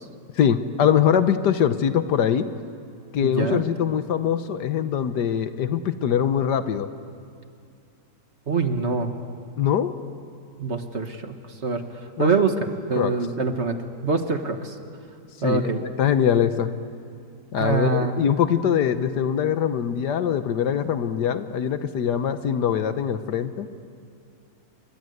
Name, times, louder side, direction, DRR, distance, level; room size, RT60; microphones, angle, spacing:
voice 1, 0.3-2.5 3.1-6.9 9.6-9.9 12.2-12.3 13.0-13.1 15.4-16.7 17.5-23.7, left 8 dB, 75° left, 10 dB, 1.6 m, -23 dB
voice 2, 3.2-3.6 8.5-9.1 10.6-11.3 11.6-11.8 12.2-12.5 12.9-13.8 14.0-14.7 15.4-15.8 17.6-18.1, right 4 dB, 40° right, 7 dB, 1.6 m, -24 dB
28.0 x 23.5 x 8.0 m, 2.5 s
omnidirectional pair, 1.9 m